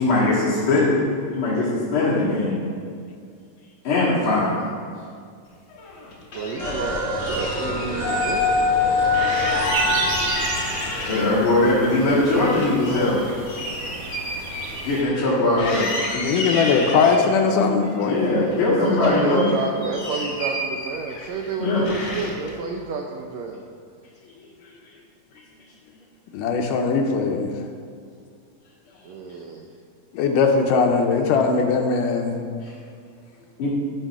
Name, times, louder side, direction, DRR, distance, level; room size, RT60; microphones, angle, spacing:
voice 1, 0.0-2.6 3.8-4.7 6.4-6.5 9.9-10.0 10.3-10.6 11.0-13.3 14.8-15.9 18.0-19.6 21.6-22.0 24.4-24.7 32.6-32.7 33.6-33.7, left 2 dB, 45° left, -10 dB, 2.3 m, -21 dB
sound 1, 5.7-6.8 7.2-8.4 8.7-8.8 9.1-11.5 11.9-15.3 15.6-17.2 17.8-18.7 19.0-21.5 21.9-22.5, left 1 dB, 60° left, 3.3 m, -31 dB
voice 2, 6.3-8.9 18.1-23.6 29.0-29.6, right 4 dB, 85° right, 1 dB, 1.5 m, -30 dB
sound 2, 6.6-11.5, left 3 dB, 20° left, 2.8 m, -24 dB
sound 3, 9.7-15.0, right 3 dB, 65° right, 1.6 m, -32 dB
voice 3, 16.1-18.5 18.9-19.2 26.3-27.5 30.1-32.4, left 5 dB, 80° left, 4 dB, 2.2 m, -20 dB
11.5 x 5.5 x 5.9 m, 2.1 s
omnidirectional pair, 3.9 m